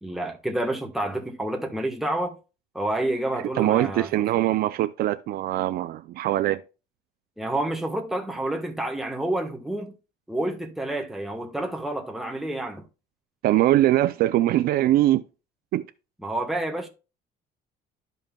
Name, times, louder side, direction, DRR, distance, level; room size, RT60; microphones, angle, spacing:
voice 1, 0.0-2.4 2.7-4.1 7.4-10.0 10.3-12.8 16.2-16.9, right 1 dB, ahead, 1.2 m, -29 dB
voice 2, 3.3-6.6 13.4-15.2 15.7-15.8, right 14 dB, 55° right, 0.4 m, -22 dB
13.0 x 5.4 x 2.2 m
cardioid pair, 170°, 19 cm